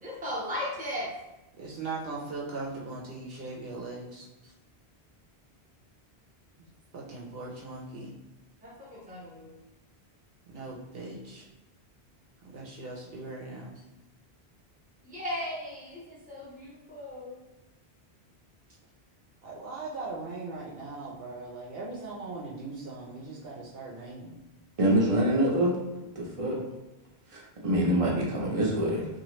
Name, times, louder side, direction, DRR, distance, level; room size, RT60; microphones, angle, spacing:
voice 1, 0.0-1.1 8.6-9.5 15.0-17.4, left 1 dB, 10° right, -6 dB, 0.9 m, -37 dB
voice 2, 1.6-4.5 6.9-8.2 10.5-11.4 12.5-13.8 19.4-24.3, right 3 dB, 65° right, -4 dB, 0.9 m, -39 dB
voice 3, 24.8-25.7 26.2-26.6 27.3-29.1, right 1 dB, 35° right, -3 dB, 0.8 m, -25 dB
2.9 x 2.6 x 3.0 m, 1.0 s
omnidirectional pair, 1.1 m